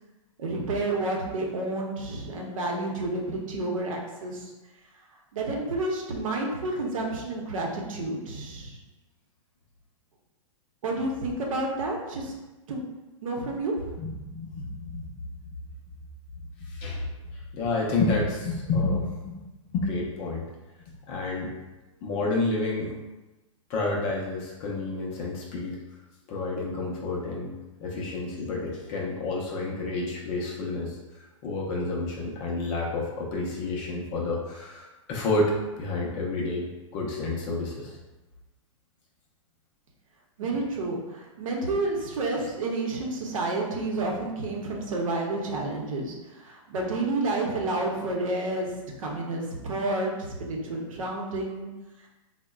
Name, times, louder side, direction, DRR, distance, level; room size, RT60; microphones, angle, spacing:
voice 1, 0.4-4.5 5.3-8.8 10.8-12.3 12.7-12.8 13.2-13.7 40.4-48.7 49.0-51.7, right 2 dB, 75° right, -1 dB, 0.7 m, -30 dB
voice 2, 14.0-15.1 16.6-17.1 17.5-19.3 19.6-20.5 21.1-21.5 22.0-22.9 23.7-25.8 26.3-27.5 27.8-31.0 31.4-38.0, left 2 dB, 30° left, -3 dB, 0.5 m, -29 dB
3.6 x 2.1 x 2.3 m, 1.1 s
hypercardioid pair, 155°, 17 cm